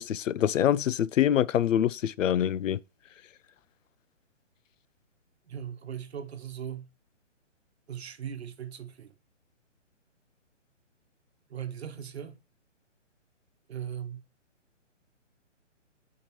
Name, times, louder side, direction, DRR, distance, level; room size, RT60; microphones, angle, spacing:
voice 1, 0.0-2.8, left 10 dB, 85° left, 0.5 m, -25 dB
voice 2, 5.5-6.9 7.9-9.1 11.5-12.4 13.7-14.2, right 9 dB, 60° right, 1.1 m, -39 dB
8.5 x 4.6 x 3.0 m
hypercardioid pair, 160°, 37 cm